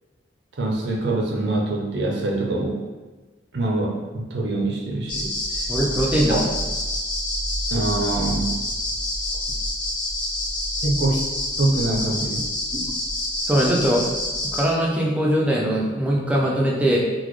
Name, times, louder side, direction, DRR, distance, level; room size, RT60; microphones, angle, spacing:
voice 1, 0.6-2.8 3.5-5.4 6.3-6.4 7.7-8.6 10.8-11.2 11.6-12.5, right 2 dB, 60° right, -1 dB, 0.5 m, -24 dB
sound 1, 5.1-14.6, left 1 dB, 25° left, 0.6 m, -27 dB
voice 2, 5.7-6.5 12.7-12.9 13.5-14.1 14.5-17.0, right 1 dB, 5° right, -4 dB, 0.4 m, -21 dB
3.9 x 2.0 x 3.0 m, 1.2 s
head